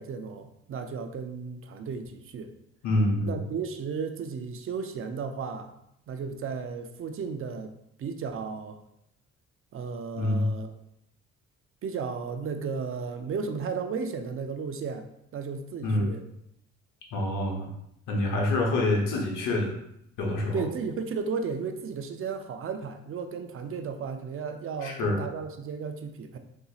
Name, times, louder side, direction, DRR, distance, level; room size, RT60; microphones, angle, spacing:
voice 1, 0.0-2.5 3.3-5.7 6.1-7.7 8.0-8.8 9.7-10.7 11.8-15.1 15.3-16.2 20.5-26.4, right 5 dB, 45° right, 7 dB, 0.4 m, -34 dB
voice 2, 2.8-3.4 10.2-10.5 15.8-16.1 17.1-17.7 18.1-19.7 20.2-20.6 24.8-25.2, left 2 dB, 90° left, 0 dB, 0.8 m, -26 dB
3.9 x 2.7 x 2.4 m, 0.76 s
cardioid pair, 90°, 30 cm